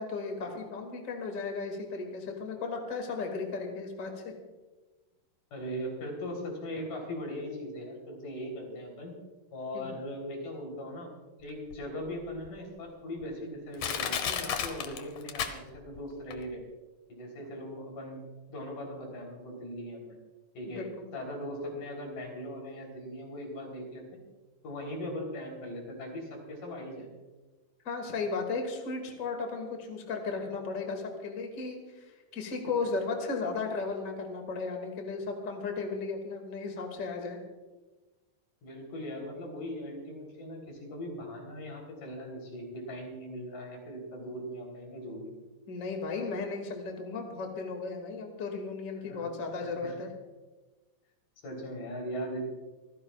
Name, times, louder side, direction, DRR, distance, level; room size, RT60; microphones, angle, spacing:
voice 1, 0.0-4.3 9.7-10.0 20.7-21.1 27.8-37.4 45.7-50.1, left 4 dB, 30° left, 3 dB, 2.2 m, -35 dB
voice 2, 5.5-9.2 9.5-11.1 11.4-16.6 17.1-18.2 18.5-20.2 20.6-20.8 21.1-24.1 24.6-27.1 38.6-45.3 49.1-49.3 49.6-50.0 51.4-52.4, equal, 80° left, 0 dB, 5.2 m, -39 dB
Crushing, 11.7-11.8 12.4-12.5 13.2-13.3 13.8-16.0 16.3-16.4, left 8 dB, 65° left, 2.1 m, -32 dB
26.0 x 15.5 x 2.4 m, 1.2 s
omnidirectional pair, 3.7 m